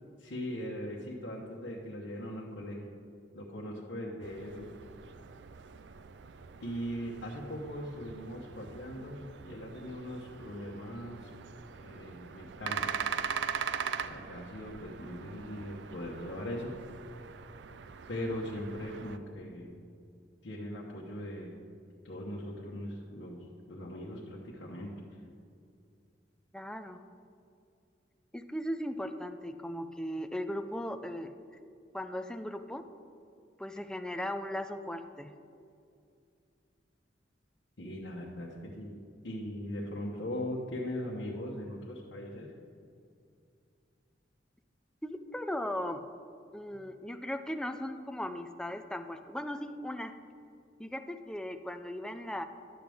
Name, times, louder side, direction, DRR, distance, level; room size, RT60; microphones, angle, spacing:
voice 1, 0.2-3.0 3.3-4.7 6.6-11.3 11.8-12.9 14.0-16.8 18.1-19.8 20.4-21.5 22.0-24.9 37.8-38.9 39.2-42.5, left 1 dB, 90° left, -4 dB, 1.1 m, -40 dB
sound 1, 4.2-19.2, right 7 dB, 70° right, 0.4 m, -41 dB
voice 2, 26.5-27.0 28.3-31.3 31.9-32.8 33.6-35.3 45.0-46.0 46.5-50.1 50.8-52.4, left 1 dB, 5° left, 7 dB, 0.4 m, -37 dB
11.5 x 7.7 x 3.5 m, 2.5 s
head